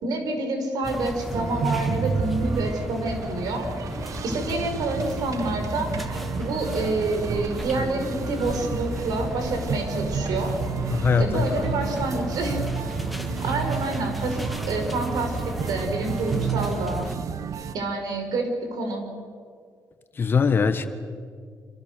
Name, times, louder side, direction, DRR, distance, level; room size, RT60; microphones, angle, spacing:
voice 1, 0.0-3.7 4.2-5.9 6.4-10.6 11.2-12.6 13.4-17.1 17.7-19.0, right 2 dB, 70° right, 5 dB, 5.4 m, -28 dB
sound 1, 0.8-17.2, left 1 dB, ahead, 1.5 m, -34 dB
sound 2, 1.3-17.7, right 7 dB, 55° right, 1.1 m, -31 dB
voice 2, 10.9-11.5 20.2-20.9, left 6 dB, 30° left, 9 dB, 1.3 m, -21 dB
27.5 x 26.5 x 6.8 m, 2.1 s
cardioid pair, 165°, 7 cm